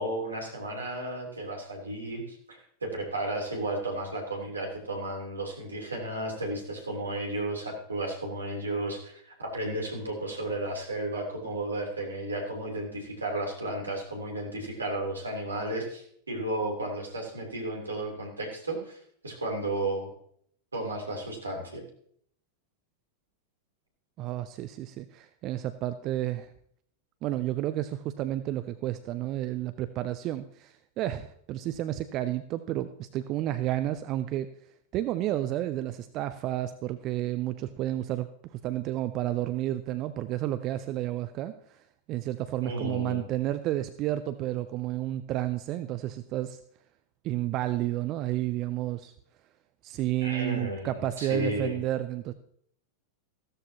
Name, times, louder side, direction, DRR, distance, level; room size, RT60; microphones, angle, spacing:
voice 1, 0.0-19.0 19.2-20.1 20.7-21.8 42.6-43.2 50.2-51.8, right 1 dB, 75° right, 0 dB, 3.3 m, -33 dB
voice 2, 24.2-26.5 27.2-34.5 34.9-46.6 47.2-49.1 49.8-52.3, right 14 dB, 35° right, 11 dB, 0.5 m, -31 dB
15.0 x 13.5 x 2.9 m, 0.66 s
figure-of-eight pair, 90°, 0 cm